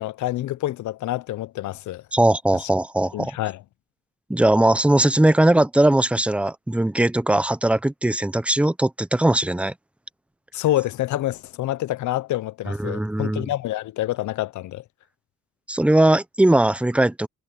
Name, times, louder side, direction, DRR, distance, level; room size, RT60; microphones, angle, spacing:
voice 1, 0.0-2.0 2.6-2.7 3.1-3.6 10.5-14.8, left 14 dB, 70° left, 0.7 m, -27 dB
voice 2, 2.1-3.4 4.3-9.7 12.7-13.5 15.7-17.3, right 1 dB, 5° right, 0.8 m, -19 dB
cardioid pair, 90°, 30 cm